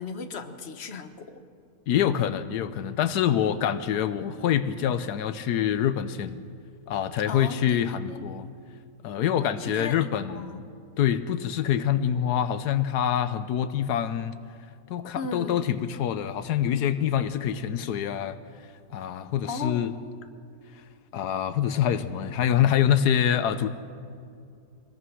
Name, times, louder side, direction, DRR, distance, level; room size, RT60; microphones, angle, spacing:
voice 1, 0.0-1.4 7.3-8.2 9.6-10.6 15.1-15.6 19.4-19.9, left 4 dB, 45° left, 7 dB, 1.5 m, -36 dB
voice 2, 1.9-6.4 6.9-8.5 9.0-10.5 11.0-14.4 14.9-18.4 18.9-19.9 21.1-23.7, left 9 dB, 85° left, 12 dB, 1.3 m, -25 dB
25.0 x 20.0 x 6.3 m, 2.5 s
omnidirectional pair, 1.7 m